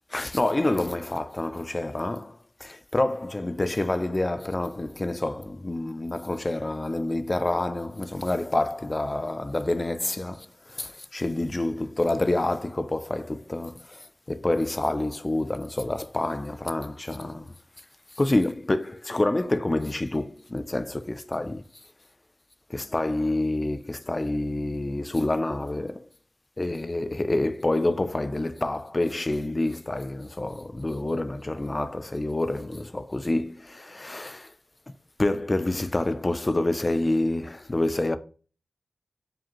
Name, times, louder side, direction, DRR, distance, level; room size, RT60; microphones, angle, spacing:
voice 1, 0.1-17.5 18.2-21.7 22.7-26.1 26.6-34.5 35.2-38.2, left 2 dB, 25° left, 0.3 m, -27 dB
4.9 x 2.6 x 2.9 m
wide cardioid pair, 85°, 0 cm